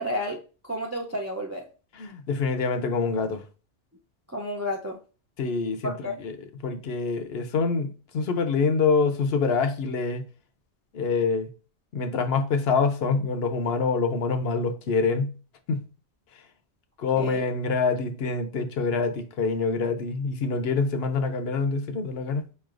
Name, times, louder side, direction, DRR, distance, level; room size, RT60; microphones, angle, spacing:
voice 1, 0.0-1.7 4.3-5.0 5.8-6.1 17.2-17.4, equal, 25° right, 0.3 m, -31 dB
voice 2, 1.9-3.4 5.4-6.4 6.6-10.2 10.9-11.5 11.9-15.3 15.7-15.8 17.0-22.4, left 4 dB, 65° left, 0.8 m, -26 dB
5.3 x 3.2 x 2.4 m
omnidirectional pair, 1.2 m